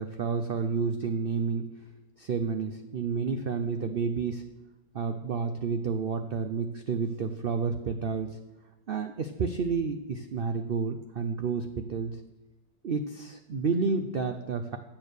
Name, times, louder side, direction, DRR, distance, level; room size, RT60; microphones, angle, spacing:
voice 1, 0.0-1.7 2.2-4.4 4.9-8.4 8.9-12.2 12.8-14.8, right 5 dB, 80° right, 7 dB, 0.5 m, -30 dB
9.4 x 7.3 x 6.6 m, 1.1 s
omnidirectional pair, 1.8 m